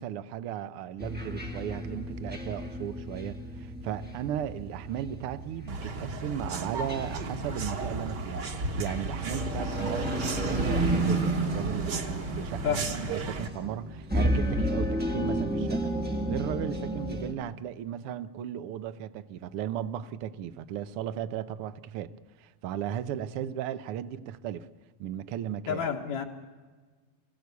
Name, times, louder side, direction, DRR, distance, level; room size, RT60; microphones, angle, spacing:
voice 1, 0.0-22.1 22.4-24.7 25.0-25.9, right 10 dB, 70° right, 1.3 m, -36 dB
sound 1, 1.0-17.3, equal, 10° right, 0.7 m, -34 dB
sound 2, 5.7-13.5, right 3 dB, 45° right, 1.7 m, -32 dB
voice 2, 25.7-26.3, left 7 dB, 75° left, 2.7 m, -29 dB
25.0 x 16.5 x 8.3 m
omnidirectional pair, 3.3 m